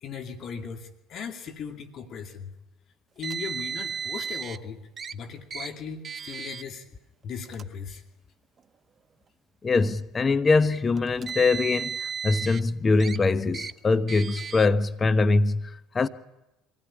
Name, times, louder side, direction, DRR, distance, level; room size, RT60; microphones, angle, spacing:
voice 1, 0.0-2.5 3.2-4.8 5.1-6.8 7.2-8.0, left 6 dB, 50° left, 2.5 m, -37 dB
Car, 3.2-4.6 5.0-5.1 5.5-5.7 6.0-6.6 7.4-7.6 8.6-8.7 11.0-12.6 13.0-13.2 13.5-13.7 14.1-14.7, right 7 dB, 35° right, 0.9 m, -34 dB
voice 2, 9.6-16.1, left 3 dB, 30° left, 1.1 m, -23 dB
25.0 x 16.5 x 10.0 m
hypercardioid pair, 70°, 0 cm